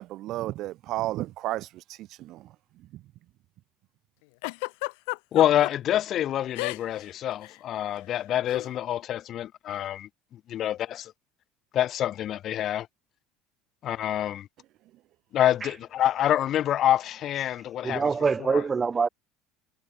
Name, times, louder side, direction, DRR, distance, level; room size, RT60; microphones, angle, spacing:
voice 1, 0.0-2.5 2.9-3.0, right 16 dB, 45° right, 6.9 m, -33 dB
Giggle, 4.4-5.7 6.5-7.1 7.3-7.6 8.5-8.7, left 32 dB, 90° left, 5.4 m, -32 dB
voice 2, 5.3-10.1 10.5-10.8 11.7-12.9 13.8-14.5 15.3-18.1 18.5-18.6, left 11 dB, 35° left, 5.3 m, -26 dB
voice 3, 17.8-19.1, right 5 dB, 15° right, 2.4 m, -25 dB
cardioid pair, 170°, 0 cm